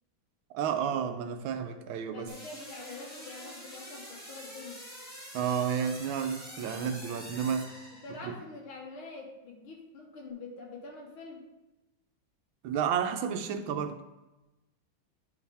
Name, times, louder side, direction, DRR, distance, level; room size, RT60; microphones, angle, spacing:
voice 1, 0.5-2.3 5.3-7.8 8.2-8.3 12.6-14.0, right 7 dB, 75° right, 1.4 m, -31 dB
voice 2, 2.1-4.8 8.0-11.4, left 3 dB, 80° left, 2.2 m, -45 dB
sound 1, 2.3-8.5, equal, 10° left, 1.3 m, -46 dB
10.5 x 4.8 x 3.4 m
omnidirectional pair, 2.3 m